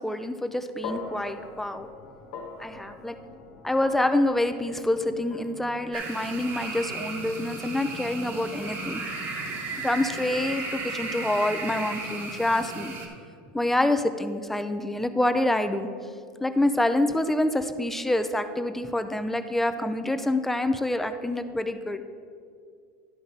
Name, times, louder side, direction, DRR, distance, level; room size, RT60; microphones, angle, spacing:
voice 1, 0.0-1.9 2.6-3.2 3.6-9.1 9.8-12.9 13.5-15.9 16.4-22.0, left 1 dB, 5° left, 9 dB, 0.4 m, -26 dB
sound 1, 0.8-9.2, left 4 dB, 80° left, 1.2 m, -44 dB
sound 2, 5.9-13.1, right 3 dB, 45° right, 1.3 m, -35 dB
11.5 x 3.8 x 5.3 m, 2.3 s
supercardioid pair, 130°, 6 cm